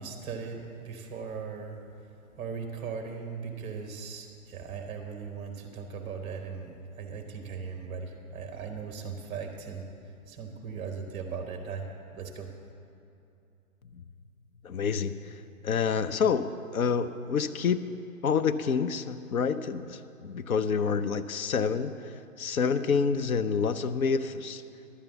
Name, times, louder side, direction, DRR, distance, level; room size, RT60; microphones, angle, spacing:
voice 1, 0.0-1.8 2.4-9.9 10.3-11.9 12.1-12.5, right 5 dB, 15° right, 4 dB, 0.9 m, -38 dB
voice 2, 14.6-15.3 15.6-17.9 18.2-21.9 22.4-24.6, left 6 dB, 75° left, 11 dB, 0.7 m, -28 dB
11.5 x 9.1 x 7.0 m, 2.6 s
hypercardioid pair, 145°, 43 cm